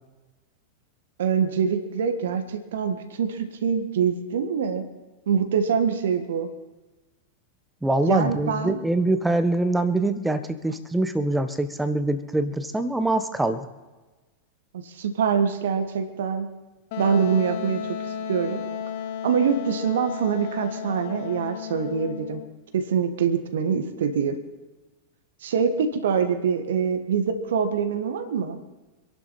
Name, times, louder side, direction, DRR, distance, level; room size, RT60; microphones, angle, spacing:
voice 1, 1.2-4.8 5.3-6.5 8.1-8.8 14.7-16.5 17.0-17.8 18.3-18.6 19.2-22.4 22.7-24.4 25.4-28.6, right 6 dB, 60° right, 7 dB, 1.6 m, -24 dB
voice 2, 7.8-13.7, right 2 dB, 5° right, 11 dB, 1.2 m, -24 dB
Wind instrument woodwind instrument, 16.9-22.5, left 7 dB, 50° left, 1.1 m, -33 dB
25.5 x 11.5 x 4.3 m, 1.2 s
figure-of-eight pair, 90°, 0 cm